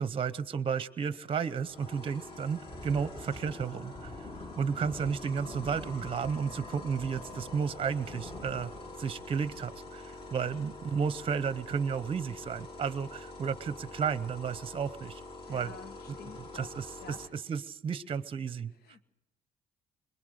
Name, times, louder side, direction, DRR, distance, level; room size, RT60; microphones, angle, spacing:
voice 1, 0.0-4.1 4.6-8.7 9.0-15.2 15.5-15.7 16.1-16.2 16.5-18.7, right 6 dB, 30° right, 15 dB, 0.8 m, -33 dB
sound 1, 1.5-17.3, left 2 dB, 35° left, 3.5 m, -46 dB
Thunder, 2.6-11.5 11.9-12.1 12.5-12.7 13.3-13.8, left 2 dB, 20° left, 1.7 m, -47 dB
voice 2, 15.5-16.7 17.0-17.2 18.8-19.1, left 5 dB, 70° left, 11 dB, 1.4 m, -48 dB
22.0 x 20.5 x 6.5 m, 0.89 s
cardioid pair, 110°, 17 cm